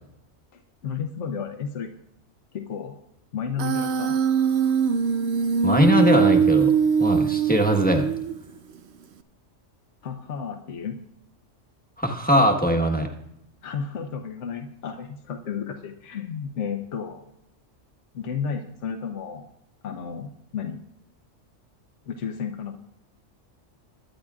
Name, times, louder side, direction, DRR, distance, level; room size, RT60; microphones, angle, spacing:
voice 1, 0.5-1.9 2.5-3.0 3.3-4.2 10.0-11.0 13.6-17.2 18.1-19.5 19.8-20.8 22.0-22.7, left 6 dB, 70° left, 4 dB, 1.2 m, -32 dB
Human voice, 3.6-8.6, right 7 dB, 60° right, 0.9 m, -22 dB
voice 2, 5.6-6.7 7.0-8.1 12.0-13.1, equal, 5° left, 2 dB, 1.1 m, -20 dB
22.0 x 10.0 x 2.4 m, 0.80 s
omnidirectional pair, 1.3 m